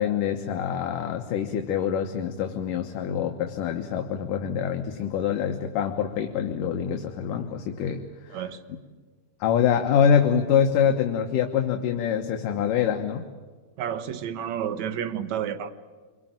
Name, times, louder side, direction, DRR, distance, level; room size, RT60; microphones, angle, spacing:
voice 1, 0.0-8.4 9.4-13.2, left 8 dB, 70° left, 4 dB, 2.7 m, -25 dB
voice 2, 8.3-8.6 13.8-15.7, right 9 dB, 60° right, 11 dB, 2.1 m, -30 dB
27.0 x 24.0 x 9.0 m, 1.5 s
omnidirectional pair, 4.2 m